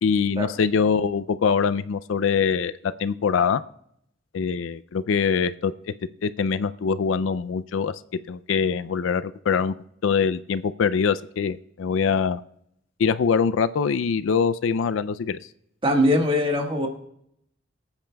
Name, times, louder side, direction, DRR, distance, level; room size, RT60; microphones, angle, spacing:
voice 1, 0.0-3.6 4.3-5.7 6.2-7.9 8.3-9.7 10.0-12.4 13.0-15.4, left 6 dB, 75° left, 14 dB, 0.4 m, -23 dB
voice 2, 15.8-16.9, left 1 dB, 25° right, 2 dB, 1.5 m, -21 dB
23.5 x 8.9 x 2.3 m, 0.73 s
head